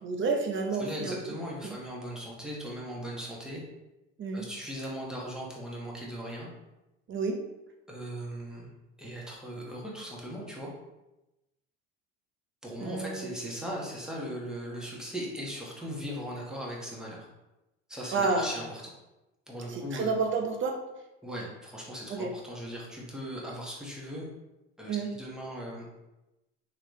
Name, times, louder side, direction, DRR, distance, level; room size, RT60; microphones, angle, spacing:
voice 1, 0.0-1.3 1.6-1.7 4.2-4.4 7.1-7.4 12.8-13.3 18.1-18.5 19.7-20.8 22.1-22.3 24.9-25.1, right 4 dB, 40° right, 3 dB, 0.8 m, -30 dB
voice 2, 0.7-3.6 4.3-6.5 7.9-8.7 9.0-10.7 12.6-17.2 17.9-18.9 19.5-20.1 21.2-24.3 24.8-25.8, equal, ahead, -4 dB, 1.3 m, -38 dB
3.9 x 3.1 x 3.1 m, 0.97 s
supercardioid pair, 85°, 30 cm